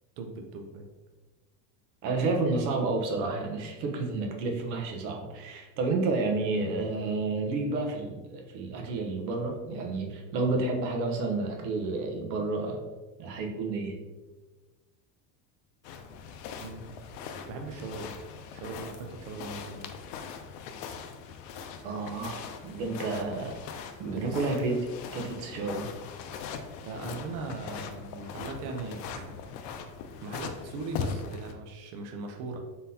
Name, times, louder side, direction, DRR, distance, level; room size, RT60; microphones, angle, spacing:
voice 1, 0.2-0.9 16.6-17.0 17.5-18.1 18.5-19.9 24.1-24.5 26.9-29.2 30.2-32.6, right 3 dB, 40° right, 3 dB, 0.4 m, -39 dB
voice 2, 2.0-12.8 13.2-14.0 21.8-23.6 24.0-24.8 25.1-25.9, right 3 dB, 85° right, 2 dB, 1.0 m, -30 dB
sound 1, 15.8-31.5, left 6 dB, 80° left, 0.6 m, -41 dB
3.9 x 3.8 x 2.7 m, 1.2 s
cardioid pair, 165°, 50 cm